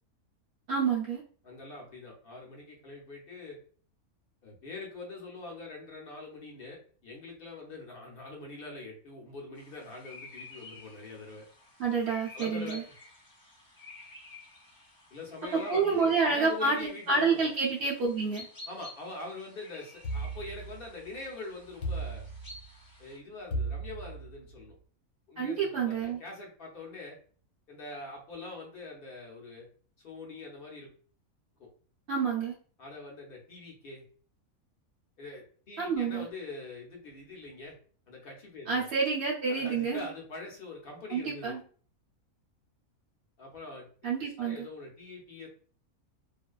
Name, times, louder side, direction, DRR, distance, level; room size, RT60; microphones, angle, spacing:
voice 1, 0.7-1.2 11.8-12.8 15.5-18.5 25.4-26.2 32.1-32.5 35.8-36.3 38.7-40.1 41.1-41.6 44.0-44.7, right 5 dB, 65° right, -4 dB, 0.6 m, -28 dB
voice 2, 1.4-3.6 4.4-11.5 12.3-12.8 15.1-17.4 18.7-22.3 23.0-24.7 25.3-27.2 27.7-29.7 30.0-30.9 31.6-31.7 32.8-34.0 35.2-37.8 38.1-38.9 39.5-41.6 43.4-43.9 44.4-45.5, left 2 dB, 50° left, -1 dB, 0.8 m, -43 dB
sound 1, 9.6-23.2, left 2 dB, 30° left, 0.4 m, -51 dB
sound 2, 20.0-21.2 21.8-22.9 23.5-24.6, right 2 dB, 75° left, 1.1 m, -36 dB
2.5 x 2.2 x 2.2 m, 0.43 s
omnidirectional pair, 1.5 m